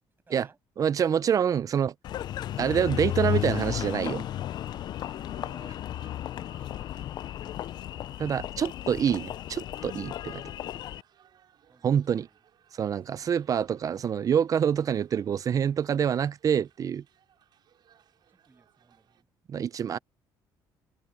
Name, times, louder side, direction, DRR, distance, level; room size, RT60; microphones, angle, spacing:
voice 1, 0.3-0.6 5.1-6.2 6.6-7.1 11.7-12.4 18.3-19.3, right 4 dB, 25° right, 7.2 m, -59 dB
voice 2, 0.8-1.9 2.6-4.2 8.2-10.4 11.8-12.3 12.8-17.0 19.5-20.0, right 8 dB, 40° right, 0.5 m, -26 dB
Engine, 2.0-11.0, left 12 dB, 55° left, 0.4 m, -34 dB
sound 1, 2.2-19.2, right 9 dB, 55° right, 6.5 m, -63 dB
cardioid pair, 110°, 9 cm